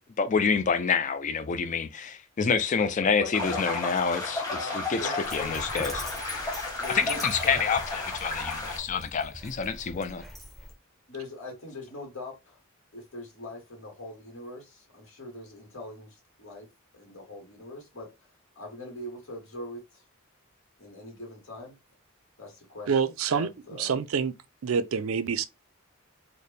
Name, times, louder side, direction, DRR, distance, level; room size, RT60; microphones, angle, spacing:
voice 1, 0.2-4.5 4.9-6.0 6.9-10.2, left 5 dB, 35° left, 0.4 m, -27 dB
voice 2, 2.7-3.6 4.5-5.5 6.8-7.2 7.5-7.6 11.1-12.6 12.9-16.7 16.9-18.1 18.5-20.0 20.8-21.7 22.4-24.0, left 2 dB, 70° left, 1.3 m, -42 dB
sound 1, 3.3-8.8, left 3 dB, 20° left, 1.2 m, -33 dB
Dog, 5.2-10.7, equal, ahead, 0.7 m, -42 dB
voice 3, 22.9-23.5 23.8-24.3 24.6-25.4, right 6 dB, 80° right, 0.4 m, -26 dB
4.1 x 2.1 x 3.3 m
head